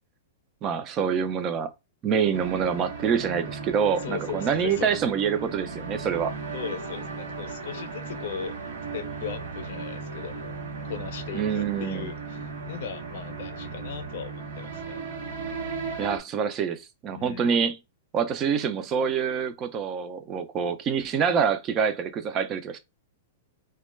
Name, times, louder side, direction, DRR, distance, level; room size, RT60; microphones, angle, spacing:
voice 1, 0.6-1.7 2.0-6.3 11.3-12.1 16.0-17.8 18.1-22.8, right 7 dB, 30° right, 0.4 m, -26 dB
sound 1, 2.3-16.2, right 4 dB, 85° right, 0.8 m, -36 dB
voice 2, 4.0-4.9 6.5-8.6 8.9-10.6 10.9-15.0 17.1-17.5, left 8 dB, 65° left, 0.5 m, -38 dB
2.2 x 2.1 x 3.1 m
hypercardioid pair, 135°, 0 cm